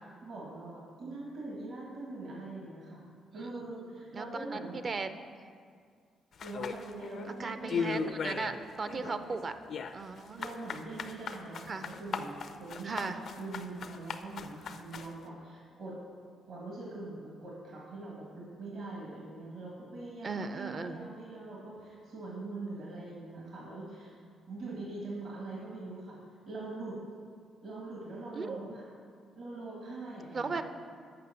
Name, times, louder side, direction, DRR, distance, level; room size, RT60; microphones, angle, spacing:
voice 1, 0.2-4.8 6.4-8.6 8.9-9.2 10.4-16.0 16.5-24.1 24.5-26.2 26.5-27.0 27.6-28.8 29.4-30.6, right 2 dB, 65° right, -4 dB, 1.8 m, -43 dB
voice 2, 3.9-5.1 7.4-8.5 8.8-9.5 9.9-10.4 11.7-11.9 12.8-13.2 20.2-21.1 28.3-28.6 30.3-30.7, right 4 dB, 40° right, 9 dB, 0.5 m, -37 dB
sound 1, 6.4-7.3 7.7-8.6 8.9-15.1, left 6 dB, 60° left, 0.4 m, -37 dB
6.8 x 5.4 x 6.9 m, 2.1 s
cardioid pair, 90°, 0 cm